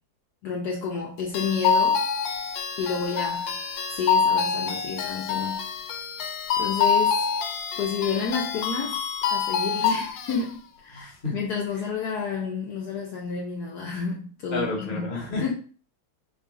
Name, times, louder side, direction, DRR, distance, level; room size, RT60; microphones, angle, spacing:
voice 1, 0.4-2.0 2.8-3.6 3.9-5.7 6.6-7.2 7.8-9.0 9.3-15.1 15.4-15.5, left 5 dB, 70° left, 1.1 m, -30 dB
sound 1, 1.3-10.4, left 6 dB, 85° left, 1.3 m, -26 dB
voice 2, 10.9-11.3 14.5-15.5, left 3 dB, 35° left, 1.0 m, -30 dB
3.9 x 2.3 x 3.7 m
omnidirectional pair, 2.0 m